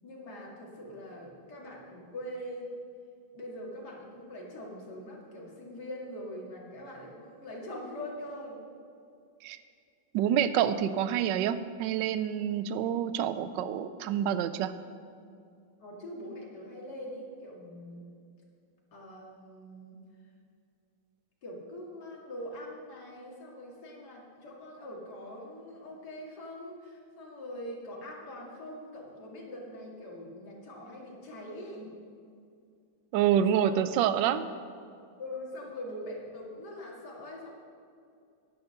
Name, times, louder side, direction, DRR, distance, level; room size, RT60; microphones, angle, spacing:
voice 1, 0.0-2.7 3.3-8.6 15.8-18.1 18.9-20.0 21.4-31.9 33.5-33.8 35.2-37.5, left 1 dB, 55° left, -3 dB, 2.7 m, -43 dB
voice 2, 10.1-14.7 33.1-34.5, right 9 dB, 75° right, 12 dB, 1.2 m, -27 dB
11.0 x 9.6 x 5.8 m, 2.4 s
omnidirectional pair, 2.2 m